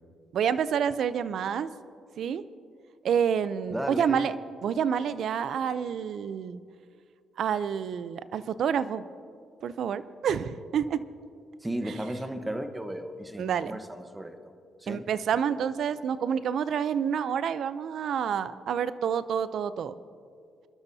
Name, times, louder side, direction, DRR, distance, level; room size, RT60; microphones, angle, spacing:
voice 1, 0.3-1.7 2.2-2.4 3.0-4.3 4.6-6.6 7.4-9.0 9.6-11.1 11.9-12.0 13.4-13.8 14.9-19.9, right 8 dB, 65° right, 14 dB, 0.5 m, -28 dB
voice 2, 3.7-4.3 11.6-14.4 14.8-15.1, right 1 dB, 10° right, 7 dB, 1.1 m, -34 dB
26.0 x 12.5 x 2.8 m, 2.3 s
cardioid pair, 90°, 0 cm